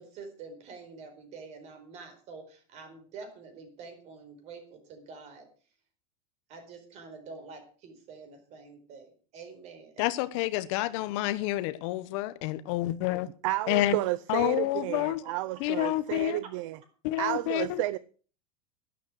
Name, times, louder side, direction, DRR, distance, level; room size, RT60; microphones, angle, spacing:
voice 1, 0.0-5.5 6.5-10.1 14.9-16.2, right 4 dB, 35° right, 4.5 m, -47 dB
voice 2, 10.0-13.3 13.7-14.0 14.3-15.2 15.6-16.4 17.0-17.8, left 16 dB, 50° left, 1.0 m, -29 dB
voice 3, 13.4-16.8 17.2-18.0, right 17 dB, 55° right, 0.6 m, -31 dB
12.0 x 11.5 x 6.3 m
supercardioid pair, 165°, 19 cm